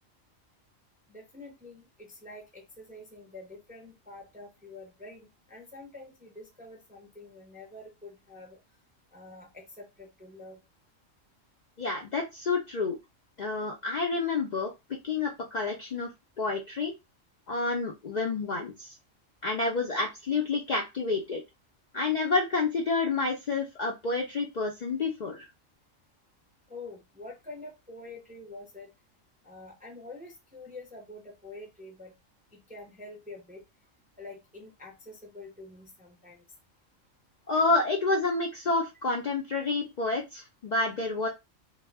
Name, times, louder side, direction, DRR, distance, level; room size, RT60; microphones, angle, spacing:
voice 1, 1.1-8.6 9.1-10.6 26.7-28.9 29.4-32.1 32.5-33.6 34.2-36.4, left 2 dB, 15° right, 1 dB, 0.3 m, -47 dB
voice 2, 11.8-13.0 13.4-14.7 15.0-16.1 16.4-16.9 17.5-19.0 19.4-21.4 21.9-25.5 37.5-41.3, left 3 dB, 85° left, 0 dB, 0.4 m, -29 dB
2.2 x 2.0 x 3.3 m, 0.23 s
omnidirectional pair, 1.4 m